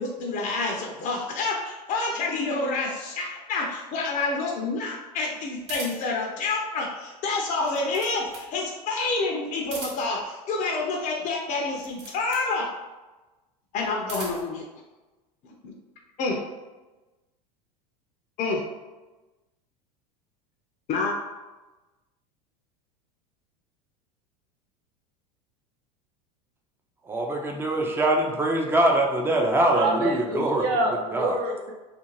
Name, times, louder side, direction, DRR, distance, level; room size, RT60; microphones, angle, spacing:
voice 1, 0.0-12.7 13.7-14.6 16.2-16.4 18.4-18.6 20.9-21.2, left 3 dB, 40° left, 0 dB, 0.5 m, -28 dB
sound 1, 5.6-6.2 7.5-8.5 9.6-10.2 11.7-12.5 13.8-14.5, right 2 dB, 35° right, 0.9 m, -39 dB
voice 2, 27.1-30.6 31.1-31.4, right 1 dB, 10° right, 1 dB, 0.4 m, -23 dB
voice 3, 29.7-31.7, right 2 dB, 70° right, 0 dB, 0.7 m, -27 dB
2.5 x 2.1 x 3.0 m, 1.1 s
hypercardioid pair, 90°, 21 cm